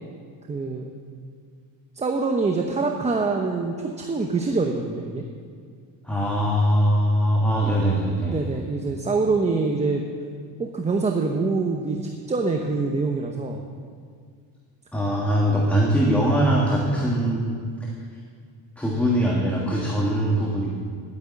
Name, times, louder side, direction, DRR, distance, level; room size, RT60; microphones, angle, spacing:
voice 1, 0.5-0.9 2.0-5.2 8.2-10.0 10.6-13.6, right 3 dB, 15° right, 2 dB, 0.8 m, -25 dB
voice 2, 6.0-8.4 14.9-17.9 18.8-20.7, equal, 5° left, -4 dB, 1.7 m, -22 dB
11.5 x 9.5 x 8.5 m, 2.1 s
cardioid pair, 145°, 42 cm